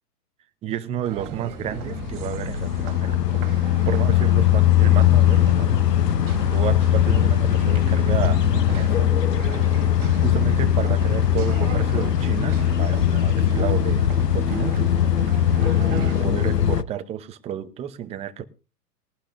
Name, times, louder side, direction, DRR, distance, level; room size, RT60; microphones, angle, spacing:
voice 1, 0.6-3.4 3.9-5.7 6.5-9.1 10.2-15.0 15.9-18.5, right 10 dB, 15° right, 0.8 m, -31 dB
sound 1, 1.0-16.3, right 9 dB, 35° right, 2.7 m, -38 dB
sound 2, 1.6-16.8, left 10 dB, 85° left, 0.9 m, -20 dB
20.5 x 11.5 x 2.6 m
hypercardioid pair, 130°, 47 cm